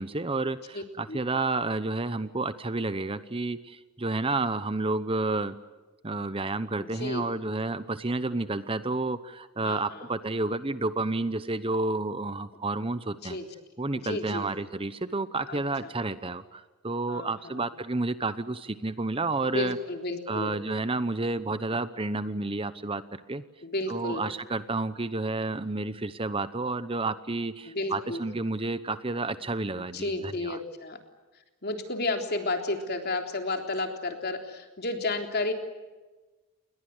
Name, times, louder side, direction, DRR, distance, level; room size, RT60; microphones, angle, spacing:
voice 1, 0.0-5.6 6.0-13.4 13.8-19.8 20.3-23.4 23.9-30.6, right 3 dB, 25° right, 13 dB, 0.9 m, -30 dB
voice 2, 0.7-1.2 6.8-7.3 9.6-10.1 13.2-13.5 14.0-14.5 15.5-15.9 17.1-17.7 19.4-20.5 23.6-24.2 27.6-28.2 29.8-31.0 31.6-35.5, left 2 dB, 45° left, 5 dB, 3.6 m, -32 dB
29.5 x 22.0 x 8.0 m, 1.2 s
head